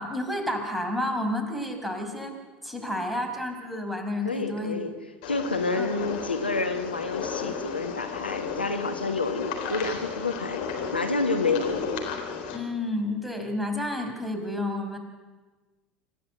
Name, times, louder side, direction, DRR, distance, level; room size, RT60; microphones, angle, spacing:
voice 1, 0.0-2.3 2.6-4.8 5.7-5.9 11.4-11.7 12.5-15.0, left 1 dB, ahead, 3 dB, 5.4 m, -30 dB
voice 2, 4.2-4.9 5.3-10.6 10.9-11.7, left 3 dB, 90° left, 6 dB, 1.5 m, -28 dB
sound 1, 5.2-12.6, left 6 dB, 65° left, 3.9 m, -34 dB
27.0 x 15.0 x 8.3 m, 1.3 s
figure-of-eight pair, 70°, 5 cm